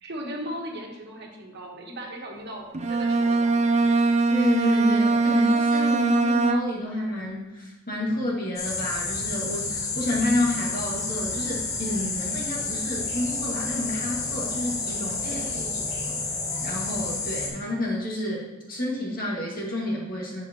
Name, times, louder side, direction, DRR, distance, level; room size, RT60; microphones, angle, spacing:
voice 1, 0.0-4.0 15.2-15.9, equal, 55° right, 0 dB, 1.4 m, -38 dB
Bowed string instrument, 2.7-7.0, right 3 dB, 35° right, 0.5 m, -22 dB
voice 2, 4.3-15.4 16.1-16.2 16.6-20.4, left 1 dB, 45° left, -3 dB, 2.1 m, -29 dB
sound 1, 8.5-17.5, left 3 dB, 85° left, 2.2 m, -30 dB
10.5 x 5.1 x 3.0 m, 1.2 s
head